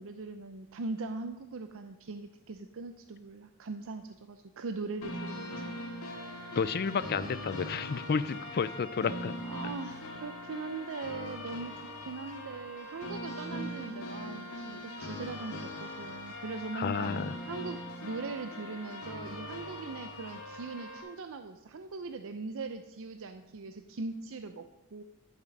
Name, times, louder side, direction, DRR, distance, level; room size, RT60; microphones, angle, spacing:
voice 1, 0.0-5.8 9.4-17.1 17.4-25.0, right 3 dB, 65° right, 8 dB, 0.6 m, -40 dB
sound 1, 5.0-21.0, left 1 dB, 80° left, 2.1 m, -41 dB
voice 2, 6.6-9.3 16.7-17.3, left 5 dB, 45° left, 15 dB, 0.4 m, -31 dB
11.0 x 7.2 x 5.3 m, 0.90 s
head